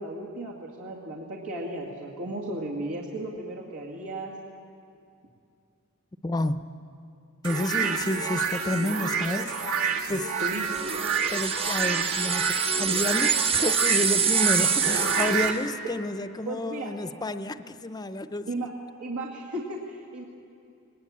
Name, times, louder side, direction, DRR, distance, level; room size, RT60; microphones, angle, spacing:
voice 1, 0.0-4.3 10.4-10.7 16.5-16.9 18.5-18.7 19.0-20.2, right 1 dB, 85° right, -4 dB, 2.3 m, -35 dB
voice 2, 6.2-6.7 7.4-10.3 11.3-18.7, left 1 dB, 20° left, 11 dB, 0.6 m, -30 dB
sound 1, 7.4-15.5, right 6 dB, 70° right, 1.6 m, -28 dB
sound 2, 10.7-15.6, right 6 dB, 25° right, 0.8 m, -26 dB
20.5 x 19.5 x 8.6 m, 2.5 s
head